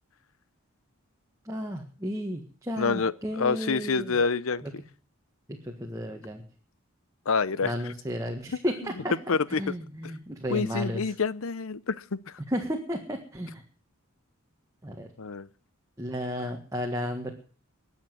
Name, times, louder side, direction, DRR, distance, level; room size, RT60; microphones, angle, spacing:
voice 1, 1.4-4.2 4.6-4.7 5.5-6.4 7.6-9.1 9.6-11.1 12.5-13.6 14.8-15.1 16.0-17.3, equal, 15° right, 1.6 m, -33 dB
voice 2, 2.8-4.6 7.3-7.7 9.3-9.6 10.5-12.4 15.2-15.5, left 4 dB, 70° left, 0.7 m, -27 dB
20.5 x 7.4 x 7.6 m
head